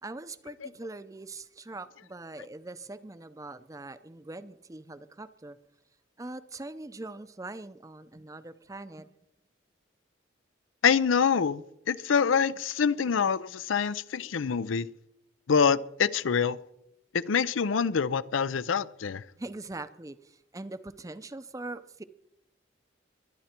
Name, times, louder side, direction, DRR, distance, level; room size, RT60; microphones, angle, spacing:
voice 1, 0.0-5.6 6.2-9.2 19.4-22.0, right 2 dB, 15° right, 0.6 m, -42 dB
voice 2, 10.8-14.9 15.5-16.6 17.1-19.2, left 6 dB, 90° left, 0.5 m, -26 dB
23.0 x 10.5 x 4.4 m
head